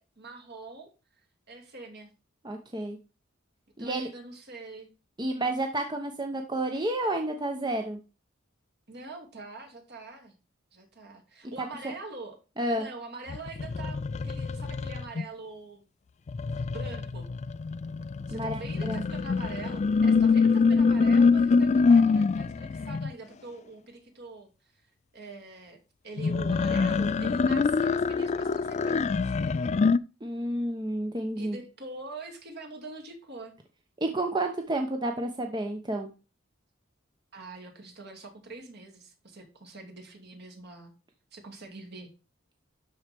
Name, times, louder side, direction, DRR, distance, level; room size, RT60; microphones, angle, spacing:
voice 1, 0.2-0.9 1.5-2.1 3.8-4.9 8.9-10.4 10.7-12.4 12.7-15.8 16.6-17.3 18.3-24.8 25.1-29.4 31.4-33.5 37.3-40.9 41.3-42.1, right 3 dB, 55° right, 2 dB, 2.5 m, -44 dB
voice 2, 2.4-3.0 3.8-4.1 5.2-8.0 11.8-11.9 12.6-12.9 18.3-19.0 30.2-31.6 34.0-36.1, right 1 dB, 20° right, 4 dB, 0.9 m, -30 dB
sound 1, 13.3-15.2 16.3-23.1 26.2-30.0, left 4 dB, 35° left, 0.3 m, -25 dB
12.0 x 4.4 x 3.5 m, 0.31 s
head